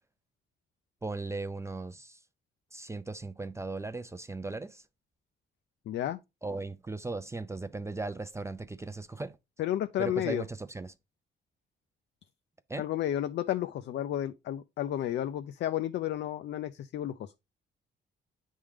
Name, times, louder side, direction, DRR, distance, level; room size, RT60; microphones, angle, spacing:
voice 1, 1.0-2.2 2.7-4.8 6.4-9.4 10.0-10.9 12.7-12.9, right 3 dB, 15° right, 0.4 m, -37 dB
voice 2, 5.9-6.2 9.6-10.4 12.8-17.3, left 12 dB, 65° left, 0.4 m, -32 dB
8.6 x 3.6 x 3.2 m
cardioid pair, 90°, 20 cm